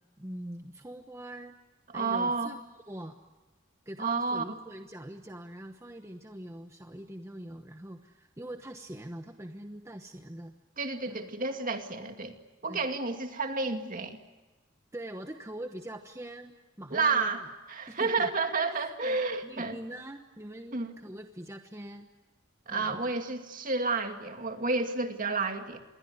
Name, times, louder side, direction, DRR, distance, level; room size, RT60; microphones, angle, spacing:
voice 1, 0.2-1.6 1.9-3.2 3.9-10.5 11.1-11.3 12.7-12.8 14.9-17.3 17.9-18.3 18.8-19.2 19.4-22.1 22.7-23.0, right 1 dB, 15° right, 5 dB, 1.1 m, -43 dB
voice 2, 1.9-2.5 4.0-4.4 10.8-12.3 12.6-14.2 16.9-19.8 20.7-20.9 22.7-25.8, right 4 dB, 40° right, 5 dB, 2.4 m, -30 dB
27.0 x 22.5 x 9.6 m, 1.2 s
head